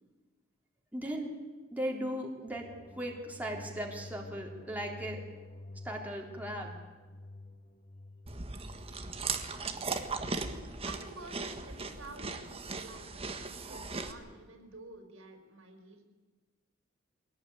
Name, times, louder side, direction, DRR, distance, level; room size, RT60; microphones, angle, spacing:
voice 1, 0.9-1.3 1.7-2.7 3.0-5.2 5.8-6.7, equal, 10° right, -1 dB, 3.5 m, -37 dB
sound 1, 2.5-9.8, left 2 dB, 35° left, 1.1 m, -49 dB
Chewing mastication, 8.3-14.1, right 4 dB, 30° right, 1.6 m, -38 dB
voice 2, 10.8-16.1, right 2 dB, 80° right, 5 dB, 4.8 m, -50 dB
23.5 x 17.5 x 9.5 m, 1.3 s
head